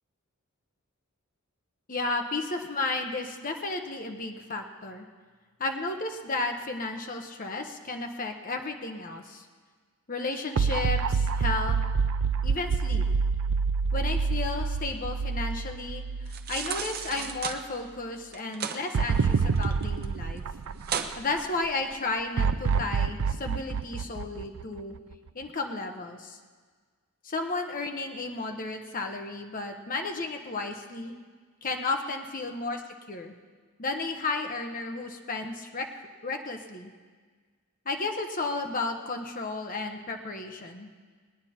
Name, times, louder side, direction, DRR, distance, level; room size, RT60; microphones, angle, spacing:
voice 1, 1.9-5.1 5.6-9.5 10.1-11.8 12.4-13.0 13.9-16.0 16.5-20.4 21.2-25.0 25.3-26.4 27.2-31.2 31.6-32.8 33.1-33.3 33.8-35.9 36.2-36.9 37.8-40.9, left 3 dB, 40° left, 3 dB, 1.0 m, -33 dB
sound 1, 10.6-16.9 17.3-17.4 18.9-21.4 22.4-25.1, right 5 dB, 75° right, 0.4 m, -27 dB
sound 2, 16.3-17.6 18.3-18.8 19.2-20.0 20.4-20.5 20.8-21.1 21.6-21.7, right 7 dB, 45° right, 0.8 m, -34 dB
20.5 x 9.6 x 4.3 m, 1.5 s
head